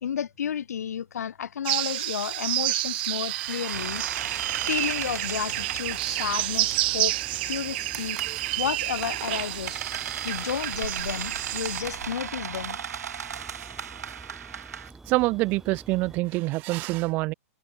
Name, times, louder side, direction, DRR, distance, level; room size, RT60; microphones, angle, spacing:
voice 1, 0.0-4.0 4.6-7.1 7.4-9.8 10.2-12.8, left 8 dB, 80° left, 2.9 m, -32 dB
sound 1, 1.6-11.8, right 19 dB, 40° right, 1.8 m, -30 dB
sound 2, 1.9-2.1 3.3-7.0 7.9-14.9, right 8 dB, 85° right, 4.5 m, -37 dB
sound 3, 3.7-16.2, right 3 dB, 5° right, 2.9 m, -47 dB
voice 2, 15.1-17.3, right 22 dB, 20° right, 0.4 m, -26 dB
hypercardioid pair, 165°, 8 cm